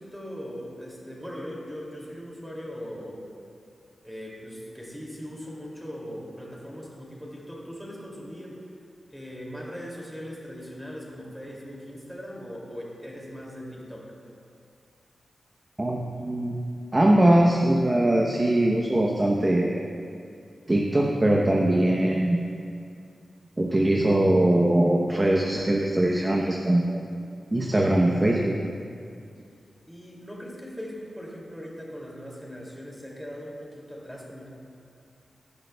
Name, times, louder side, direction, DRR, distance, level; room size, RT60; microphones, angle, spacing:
voice 1, 0.0-3.2 4.0-8.6 9.1-14.2 29.9-34.5, equal, ahead, -4 dB, 2.5 m, -39 dB
voice 2, 15.8-16.5 16.9-19.8 20.7-22.4 23.6-27.0 27.5-28.5, right 1 dB, 25° right, -1 dB, 0.8 m, -21 dB
16.5 x 11.0 x 2.3 m, 2.4 s
wide cardioid pair, 95°, 0 cm